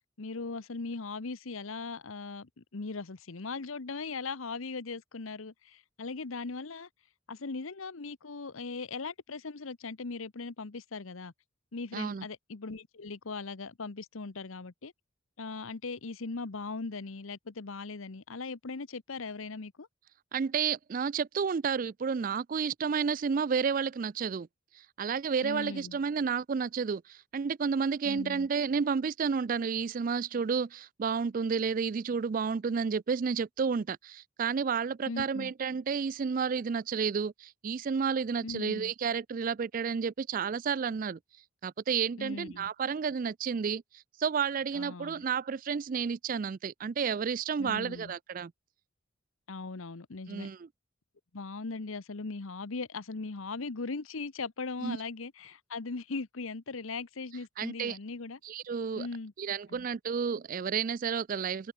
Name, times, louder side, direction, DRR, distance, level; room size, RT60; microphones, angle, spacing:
voice 1, 0.2-6.9 7.3-11.3 11.7-14.9 15.4-19.9 25.4-26.0 28.0-28.5 35.1-35.5 38.4-38.9 42.2-42.7 44.7-45.2 47.6-48.1 49.5-50.5 51.3-58.4 58.9-59.3 59.7-59.9, left 4 dB, 75° left, 0.9 m, -39 dB
voice 2, 11.9-12.2 20.3-24.5 24.7-41.2 41.6-48.5 50.3-50.7 54.8-55.0 57.6-58.0 58.4-59.1 59.4-61.7, right 6 dB, 40° right, 0.3 m, -31 dB
head